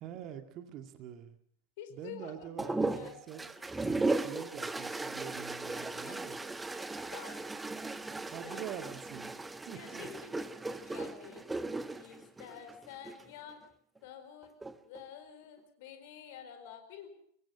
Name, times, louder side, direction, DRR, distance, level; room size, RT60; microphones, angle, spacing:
voice 1, 0.0-1.4 1.9-6.4 8.3-9.4 9.7-10.1, right 9 dB, 35° right, 7 dB, 2.0 m, -45 dB
voice 2, 1.8-3.2 5.7-6.2 6.6-7.5 8.4-8.6 9.7-11.5 11.9-13.6 14.0-14.5 14.8-17.1, left 9 dB, 50° left, 7 dB, 4.6 m, -49 dB
sound 1, 2.6-13.3 14.4-15.0, right 3 dB, 10° right, 1.1 m, -37 dB
24.5 x 21.5 x 5.7 m, 0.63 s
figure-of-eight pair, 90°, 0 cm